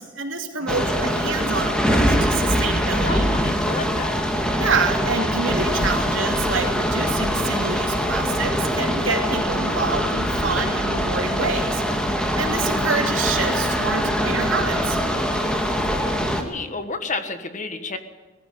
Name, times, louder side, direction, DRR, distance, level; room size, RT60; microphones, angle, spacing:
voice 1, 0.0-3.3 4.6-12.1 12.4-15.0, right 4 dB, 80° right, 3 dB, 2.8 m, -27 dB
voice 2, 0.6-1.0 3.1-4.1 16.1-18.0, left 3 dB, 40° left, 9 dB, 1.5 m, -31 dB
sound 1, 0.7-16.4, equal, 5° left, 2.0 m, -23 dB
19.0 x 15.5 x 9.5 m, 1.2 s
head